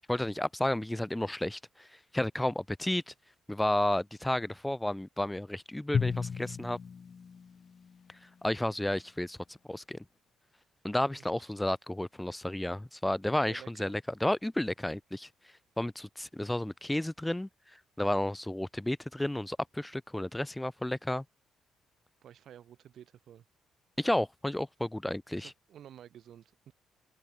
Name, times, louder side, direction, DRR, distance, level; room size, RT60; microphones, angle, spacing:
voice 1, 0.1-1.9 2.1-3.1 3.5-6.8 8.4-10.0 10.8-15.3 15.8-17.5 18.0-21.2 24.0-25.5, left 1 dB, 10° left, 0.7 m, -32 dB
Drum, 5.9-8.3, left 6 dB, 45° left, 0.4 m, -35 dB
voice 2, 13.3-13.9 22.2-23.4 25.3-26.7, right 10 dB, 65° right, 3.4 m, -52 dB
open air
supercardioid pair, 65°, 0 cm